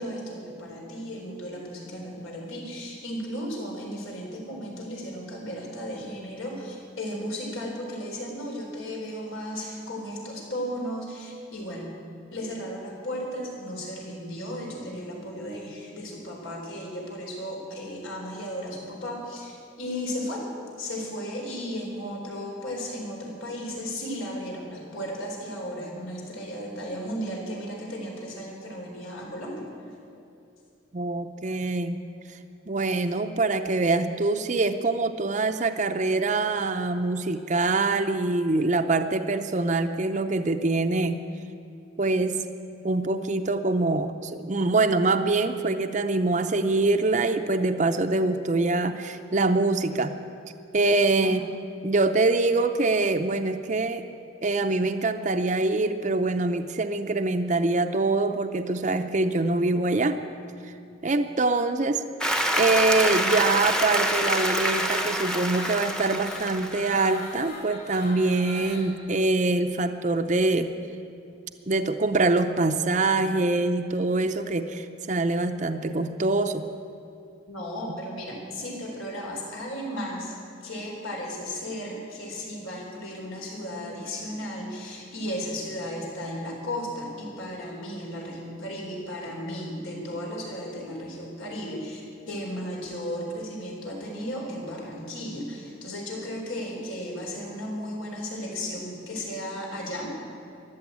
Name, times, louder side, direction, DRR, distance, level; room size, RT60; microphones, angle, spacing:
voice 1, 0.0-11.9 12.3-20.5 20.8-29.7 51.2-51.4 77.5-80.4 80.6-100.1, equal, 85° left, -1 dB, 4.1 m, -35 dB
voice 2, 30.9-32.0 32.7-41.2 42.0-42.4 42.8-50.1 50.7-51.5 51.8-54.0 54.4-60.2 61.0-62.0 62.6-70.7 71.7-76.6, right 2 dB, 35° right, 7 dB, 0.6 m, -24 dB
Applause, 62.2-67.2, equal, 5° left, 0.8 m, -26 dB
sound 1, 62.5-68.8, left 2 dB, 50° left, 4.0 m, -41 dB
14.5 x 11.0 x 8.5 m, 2.7 s
head